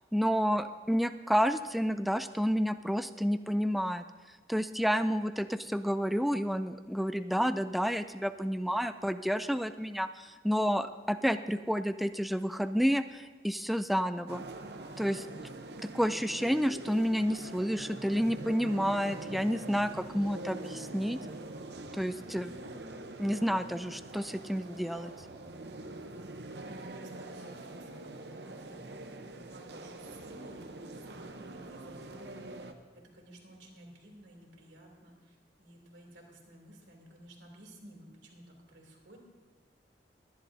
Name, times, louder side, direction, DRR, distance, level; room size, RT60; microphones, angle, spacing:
voice 1, 0.1-4.0 4.5-14.5 15.0-15.3 15.9-21.2 21.9-22.5 23.2-25.1, equal, ahead, 10 dB, 0.3 m, -30 dB
sound 1, 14.3-32.7, right 2 dB, 65° right, 0.8 m, -44 dB
voice 2, 26.5-28.8 29.2-32.7 32.9-39.2, right 1 dB, 90° right, 0 dB, 2.9 m, -55 dB
22.5 x 10.5 x 2.7 m, 1.4 s
head